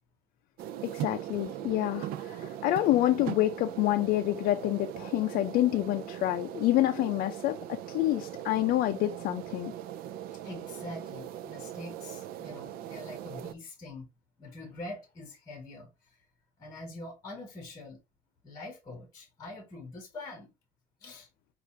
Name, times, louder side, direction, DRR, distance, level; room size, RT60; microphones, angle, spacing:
sound 1, 0.6-13.5, right 11 dB, 90° right, 0.4 m, -40 dB
voice 1, 0.8-9.7, left 15 dB, 70° left, 0.4 m, -28 dB
voice 2, 10.4-14.1 14.4-15.9 16.6-18.0 18.4-20.5 21.0-21.3, left 2 dB, 25° left, 1.3 m, -44 dB
6.5 x 2.5 x 3.2 m
cardioid pair, 175°, 15 cm